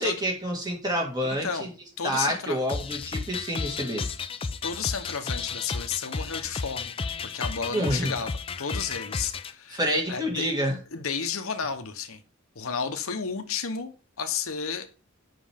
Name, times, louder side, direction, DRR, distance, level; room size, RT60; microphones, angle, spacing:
voice 1, 0.0-1.7 2.0-4.1 7.7-8.1 9.7-10.8, equal, 20° right, 2.0 m, -28 dB
voice 2, 1.2-1.7 2.0-2.6 4.6-7.0 7.2-8.3 8.6-9.8 10.1-10.5 10.9-12.2 12.5-14.9, left 6 dB, 80° left, 0.9 m, -32 dB
sound 1, 2.7-9.5, left 4 dB, 25° left, 0.4 m, -33 dB
7.5 x 5.9 x 3.5 m
head